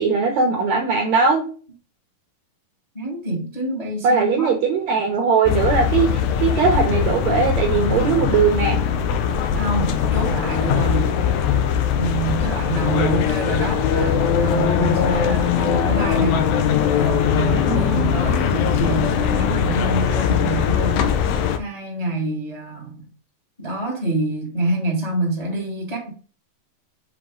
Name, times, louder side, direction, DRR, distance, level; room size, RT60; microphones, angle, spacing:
voice 1, 0.0-1.4 4.0-8.8 17.6-18.1, right 5 dB, 75° right, 1.7 m, -20 dB
voice 2, 2.9-4.5 9.5-11.2 11.9-16.5 17.0-21.1 21.6-23.1 23.6-26.1, right 2 dB, 25° left, 0.9 m, -26 dB
sound 1, 5.4-21.6, left 8 dB, 85° left, 1.6 m, -20 dB
7.3 x 3.9 x 3.7 m
omnidirectional pair, 4.3 m